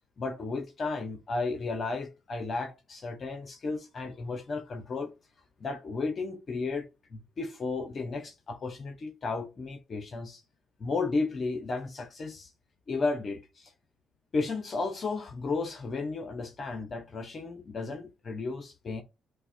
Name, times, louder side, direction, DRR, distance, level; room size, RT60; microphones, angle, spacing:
voice 1, 0.2-5.1 5.6-6.9 7.1-10.4 10.8-12.5 12.9-13.7 14.3-19.0, left 3 dB, 45° left, 0.7 m, -33 dB
5.5 x 2.1 x 2.5 m
cardioid pair, 90°, 0 cm